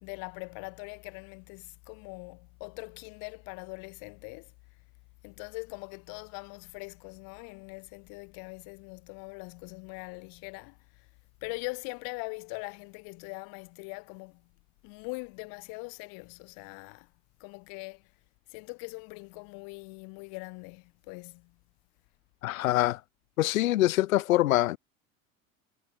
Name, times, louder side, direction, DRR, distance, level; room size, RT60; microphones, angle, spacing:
voice 1, 0.0-4.5 5.2-11.1 11.4-14.5 14.8-17.1 17.4-18.0 18.5-21.5, left 33 dB, 55° left, 2.1 m, -42 dB
voice 2, 22.4-23.0 23.4-24.8, left 15 dB, 75° left, 0.6 m, -24 dB
figure-of-eight pair, 75°, 41 cm